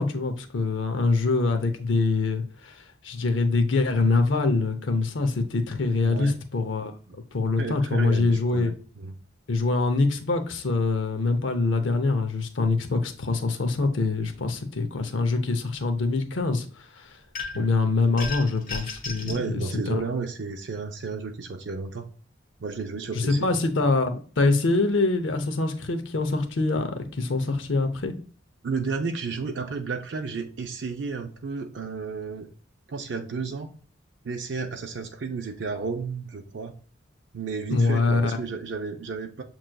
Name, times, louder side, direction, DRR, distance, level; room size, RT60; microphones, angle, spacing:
voice 1, 0.0-6.9 7.3-8.7 9.5-17.2 17.5-20.0 23.1-28.1 37.7-38.3, left 3 dB, 75° left, 0.7 m, -24 dB
voice 2, 6.0-6.4 7.1-7.2 7.6-9.1 17.5-17.7 19.2-22.1 22.6-23.5 28.6-32.5 32.9-33.7 34.2-36.7 37.3-39.4, right 4 dB, 65° right, 0.5 m, -32 dB
sound 1, 17.3-17.7 18.2-19.4, left 4 dB, 45° left, 1.1 m, -34 dB
7.5 x 3.0 x 2.2 m
head